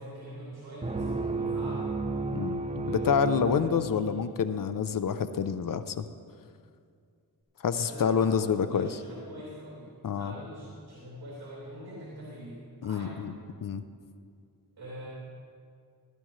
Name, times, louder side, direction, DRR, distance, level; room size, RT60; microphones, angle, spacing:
voice 1, 0.0-2.0 2.8-4.1 7.7-9.9 10.2-13.2 14.8-15.1, equal, 70° right, -7 dB, 2.9 m, -43 dB
sound 1, 0.8-4.4, right 3 dB, 15° right, 0.6 m, -32 dB
voice 2, 2.3-6.1 7.6-8.9 10.0-10.3 12.8-13.3 13.6-13.8, left 7 dB, 60° left, 12 dB, 0.6 m, -28 dB
16.0 x 11.0 x 3.2 m, 2.2 s
wide cardioid pair, 100°, 38 cm